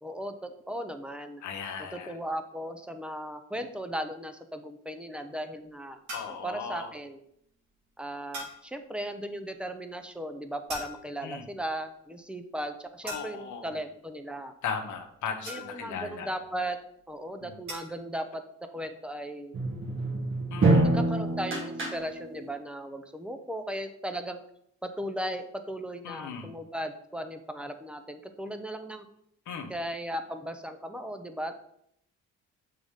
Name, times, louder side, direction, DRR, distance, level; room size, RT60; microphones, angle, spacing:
voice 1, 0.0-1.4 1.8-6.0 6.3-7.2 8.0-14.5 15.5-16.8 17.1-18.4 18.7-19.6 20.8-24.4 24.8-29.1 29.7-31.5, right 1 dB, 5° right, 7 dB, 0.6 m, -37 dB
voice 2, 1.4-2.2 6.1-6.9 11.2-11.4 13.0-13.7 14.6-16.3 17.4-17.6 20.5-20.9 26.0-26.5 29.5-29.7, left 6 dB, 75° left, 5 dB, 1.0 m, -37 dB
sound 1, 6.1-6.5 8.3-8.7 10.7-11.3 13.1-13.6 15.5-16.0 17.7-18.0, equal, 80° right, 1.8 m, -40 dB
sound 2, 19.5-22.5, right 2 dB, 40° right, 1.4 m, -26 dB
6.8 x 3.8 x 3.6 m, 0.71 s
cardioid pair, 90°, 30 cm